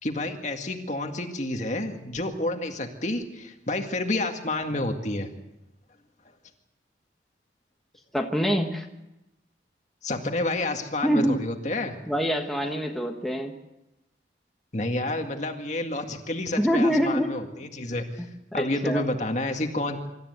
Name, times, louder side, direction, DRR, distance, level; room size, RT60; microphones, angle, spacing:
voice 1, 0.0-5.3 10.0-11.9 14.7-18.3 18.5-20.0, left 2 dB, 40° left, 4 dB, 2.0 m, -29 dB
voice 2, 8.1-8.8 11.0-11.4 12.1-13.5 16.6-17.3 18.5-19.0, equal, ahead, 1 dB, 1.5 m, -25 dB
25.5 x 13.5 x 8.2 m, 0.93 s
head